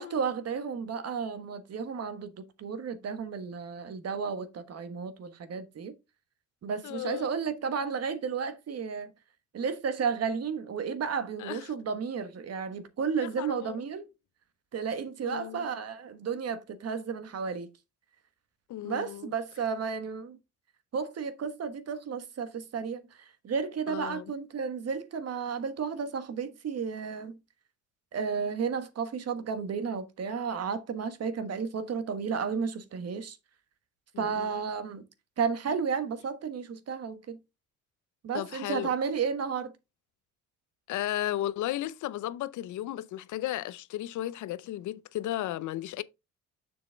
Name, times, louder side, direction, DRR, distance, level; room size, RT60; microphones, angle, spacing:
voice 1, 0.0-5.9 6.6-9.1 9.5-14.1 14.7-17.7 18.8-20.4 20.9-27.3 28.1-33.4 34.2-35.0 35.4-37.4 38.2-39.7, right 6 dB, 55° right, 1.3 m, -33 dB
voice 2, 6.8-7.3 11.4-11.7 13.2-13.8 15.2-15.7 18.7-19.3 23.9-24.3 34.1-34.5 38.3-38.9 40.9-46.0, left 13 dB, 75° left, 0.6 m, -34 dB
7.2 x 6.2 x 3.3 m
cardioid pair, 90°, 30 cm